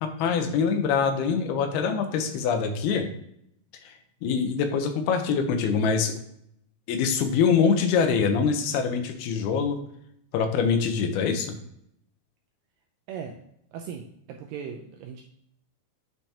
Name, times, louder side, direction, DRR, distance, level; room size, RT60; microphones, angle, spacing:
voice 1, 0.0-3.1 3.9-4.0 4.2-6.2 6.9-9.8 10.3-11.5, left 6 dB, 85° left, 6 dB, 2.7 m, -24 dB
voice 2, 13.7-15.2, right 7 dB, 80° right, 2 dB, 2.0 m, -38 dB
8.9 x 4.6 x 2.8 m, 0.73 s
omnidirectional pair, 4.5 m